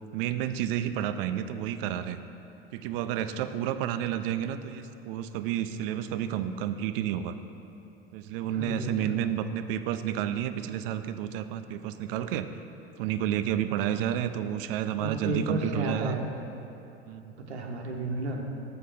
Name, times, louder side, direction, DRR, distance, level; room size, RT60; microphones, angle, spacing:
voice 1, 0.1-2.2 2.7-7.4 8.1-12.5 13.0-16.2 17.1-17.3, right 10 dB, 60° right, 11 dB, 0.5 m, -30 dB
voice 2, 8.5-9.3 15.0-16.3 17.4-18.4, right 2 dB, 85° right, 1 dB, 0.9 m, -32 dB
6.8 x 5.1 x 6.5 m, 3.0 s
hypercardioid pair, 80°, 33 cm